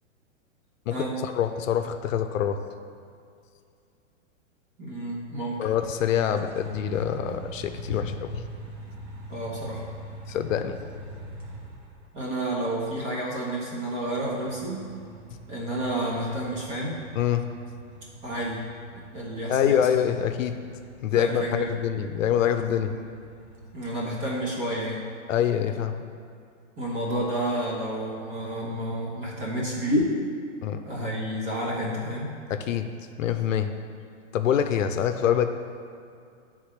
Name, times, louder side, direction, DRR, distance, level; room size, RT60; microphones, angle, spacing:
voice 1, 0.9-2.6 5.6-8.5 10.3-10.8 17.2-17.4 19.5-20.6 21.0-23.0 25.3-26.0 30.6-30.8 32.5-32.9 33.2-33.7 34.3-35.5, left 9 dB, 85° left, 8 dB, 0.6 m, -25 dB
voice 2, 4.8-5.6 9.3-9.8 12.1-14.8 15.5-17.0 18.2-18.6 19.1-19.8 21.1-21.6 22.9-23.1 23.7-25.1 26.8-30.1 30.8-32.3, right 1 dB, 20° right, -5 dB, 1.0 m, -30 dB
sound 1, 5.9-12.3 14.1-24.1, right 2 dB, 55° right, 1.4 m, -44 dB
9.4 x 3.7 x 3.2 m, 2.3 s
hypercardioid pair, 160°, 38 cm